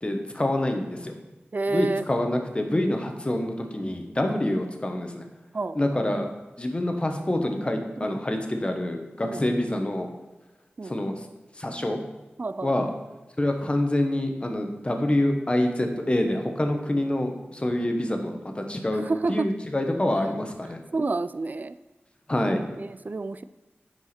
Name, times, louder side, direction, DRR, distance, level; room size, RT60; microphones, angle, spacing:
voice 1, 0.0-1.1 1.7-5.2 5.7-6.3 6.6-10.1 10.8-11.3 11.6-12.0 12.6-12.9 13.4-19.0 19.3-20.8 22.3-22.6, left 1 dB, 25° left, 4 dB, 1.1 m, -26 dB
voice 2, 1.5-2.0 4.2-4.4 5.5-5.8 8.0-8.2 9.2-9.5 10.8-11.0 12.4-12.7 17.8-18.0 18.9-19.5 20.9-21.8 22.8-23.4, right 3 dB, 45° right, 13 dB, 0.4 m, -29 dB
9.5 x 4.7 x 4.3 m, 1.1 s
wide cardioid pair, 65°, 4 cm